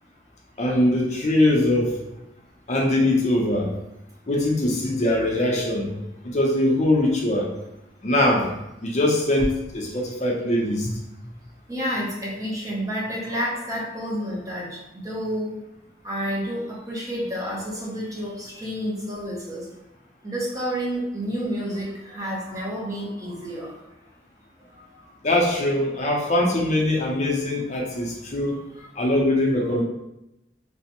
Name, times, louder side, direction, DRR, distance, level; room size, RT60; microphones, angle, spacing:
voice 1, 0.6-1.9 2.7-3.7 4.3-5.9 6.2-7.5 8.0-8.5 8.8-10.9 25.2-28.6 29.0-29.8, left 1 dB, 40° left, -2 dB, 0.5 m, -22 dB
voice 2, 11.7-15.5 16.0-19.7 20.2-23.8 24.7-24.8 28.7-28.9 29.6-29.8, equal, 20° right, -4 dB, 0.6 m, -30 dB
3.2 x 2.0 x 2.8 m, 0.90 s
head